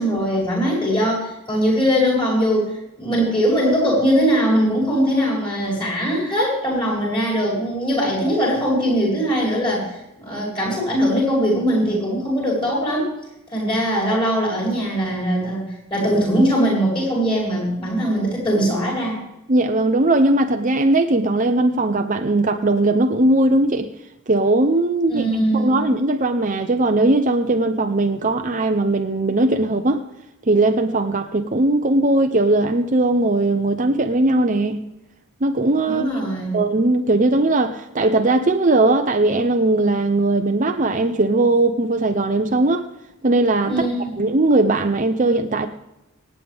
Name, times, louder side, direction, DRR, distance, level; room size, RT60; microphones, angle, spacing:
voice 1, 0.0-2.7 3.0-13.1 13.5-19.2 25.1-25.8 35.8-36.6 43.7-44.1, equal, 20° left, -3 dB, 6.8 m, -21 dB
voice 2, 19.5-23.9 24.3-30.0 30.5-34.8 35.4-36.0 36.5-42.9 43.2-43.9 44.2-45.7, right 2 dB, 35° right, 6 dB, 0.8 m, -19 dB
25.0 x 9.3 x 3.6 m, 0.90 s
head